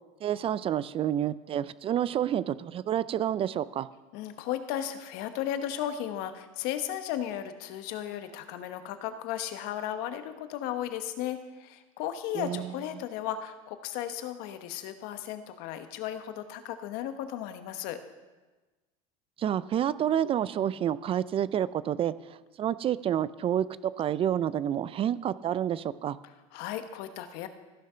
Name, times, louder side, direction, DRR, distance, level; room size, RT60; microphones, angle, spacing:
voice 1, 0.2-3.9 12.4-12.7 19.4-26.2, right 10 dB, 35° right, 17 dB, 0.4 m, -29 dB
voice 2, 4.1-18.0 26.2-27.5, left 11 dB, 65° left, 9 dB, 1.1 m, -35 dB
14.5 x 6.6 x 5.6 m, 1.2 s
supercardioid pair, 110°, 17 cm